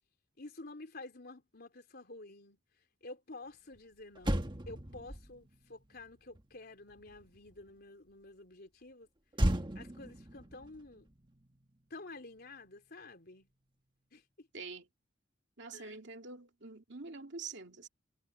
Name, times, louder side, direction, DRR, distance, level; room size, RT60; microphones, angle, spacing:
voice 1, 0.4-2.6 3.0-9.1 9.7-11.1 11.9-13.5 14.1-14.5 15.7-16.0, left 2 dB, 55° left, 3.7 m, -50 dB
Motor vehicle (road), 3.7-3.8 4.1-7.7 9.3-11.9 12.2-12.5, right 1 dB, 25° right, 1.5 m, -37 dB
voice 2, 14.5-14.9 15.6-17.9, right 4 dB, 65° right, 2.6 m, -46 dB
head